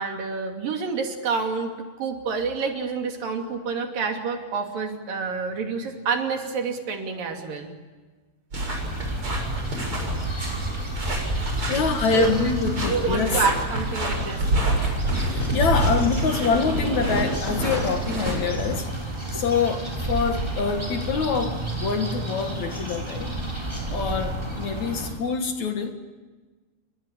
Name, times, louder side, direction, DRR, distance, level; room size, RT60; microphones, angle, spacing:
voice 1, 0.0-7.7 12.1-12.3 12.8-14.5, right 5 dB, 65° right, 4 dB, 4.4 m, -28 dB
sound 1, 8.5-18.8, right 1 dB, 35° right, 7.8 m, -28 dB
sound 2, 8.7-25.1, right 1 dB, 5° right, 6.3 m, -31 dB
voice 2, 11.7-13.4 15.3-18.9 19.3-23.3 23.9-25.9, left 5 dB, 55° left, 6 dB, 2.7 m, -25 dB
29.5 x 22.0 x 8.8 m, 1.3 s
omnidirectional pair, 4.3 m